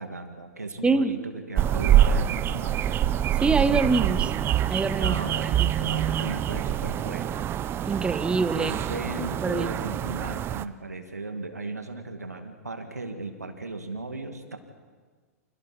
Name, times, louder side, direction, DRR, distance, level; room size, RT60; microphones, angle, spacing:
voice 1, 0.0-3.0 5.0-7.5 8.5-14.6, right 3 dB, 90° right, 6 dB, 2.3 m, -36 dB
voice 2, 0.8-1.2 3.4-4.3 4.7-5.2 5.4-5.5 7.9-8.8 9.4-9.7, right 4 dB, 10° right, 11 dB, 1.2 m, -24 dB
sound 1, 1.6-10.6, right 11 dB, 25° right, 0.8 m, -25 dB
30.0 x 26.5 x 4.4 m, 1.5 s
figure-of-eight pair, 100°, 8 cm